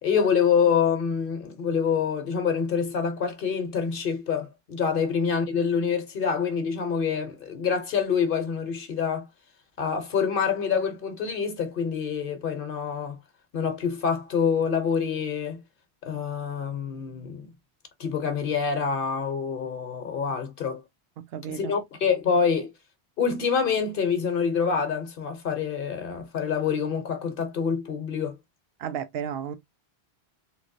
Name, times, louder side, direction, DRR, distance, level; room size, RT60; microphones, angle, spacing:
voice 1, 0.0-9.3 9.8-13.2 13.5-15.6 16.0-17.5 18.0-20.8 21.5-22.7 23.2-28.3, left 6 dB, 60° left, 0.8 m, -26 dB
voice 2, 21.2-21.8 28.8-29.6, right 8 dB, 70° right, 0.8 m, -33 dB
3.1 x 3.0 x 2.6 m
omnidirectional pair, 1.1 m